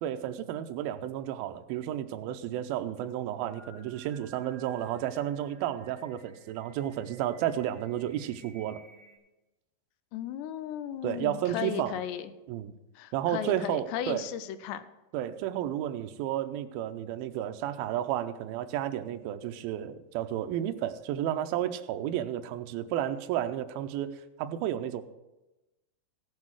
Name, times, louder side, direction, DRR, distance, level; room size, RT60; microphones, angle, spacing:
voice 1, 0.0-8.8 11.0-12.0 12.5-12.7 13.1-14.3 15.1-25.0, right 11 dB, 90° right, 8 dB, 2.1 m, -32 dB
Singing, 3.2-9.2, right 2 dB, 5° left, 3.2 m, -56 dB
voice 2, 10.1-12.3 13.0-14.8, left 10 dB, 85° left, 12 dB, 2.9 m, -36 dB
16.0 x 7.5 x 4.7 m, 1.0 s
omnidirectional pair, 4.8 m